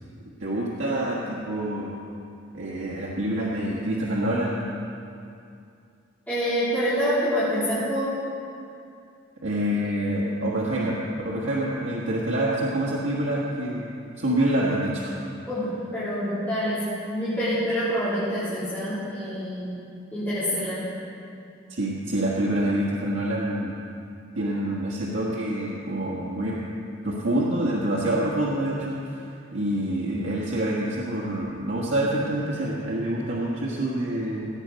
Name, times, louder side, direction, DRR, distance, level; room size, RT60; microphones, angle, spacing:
voice 1, 0.4-1.9 2.5-4.6 9.4-13.8 14.2-15.2 21.7-23.7 24.3-26.6 27.0-29.2 29.5-34.5, right 1 dB, 85° right, -6 dB, 1.6 m, -26 dB
voice 2, 6.3-8.1 15.5-16.8 17.1-19.7 20.1-20.8, equal, 10° left, -16 dB, 3.4 m, -26 dB
17.0 x 8.2 x 5.2 m, 2.5 s
head